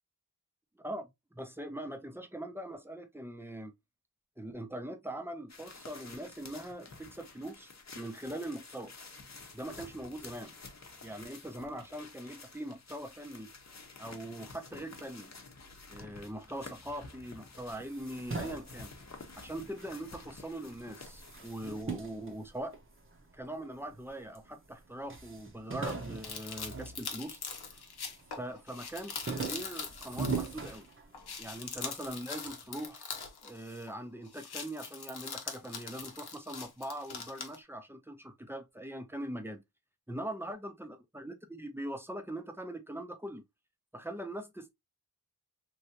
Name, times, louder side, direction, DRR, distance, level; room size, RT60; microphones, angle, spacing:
voice 1, 0.8-3.7 4.4-8.9 9.5-10.5 11.0-13.5 14.0-15.3 15.9-18.9 19.4-22.7 23.3-27.4 27.7-27.8 28.3-30.9 31.4-33.1 33.4-39.6 40.1-43.4 43.9-44.7, right 1 dB, 5° right, 0.6 m, -42 dB
sound 1, 5.5-21.8, left 3 dB, 45° left, 0.8 m, -51 dB
sound 2, 17.8-20.3 20.7-23.2 23.8-24.5 24.7-24.8 25.1-27.7 28.1-28.5 28.9-31.4, right 4 dB, 35° right, 0.8 m, -40 dB
sound 3, 25.8-30.9 31.1-34.0 34.3-37.6, left 5 dB, 85° left, 0.8 m, -43 dB
3.2 x 2.6 x 2.7 m
wide cardioid pair, 70°, 38 cm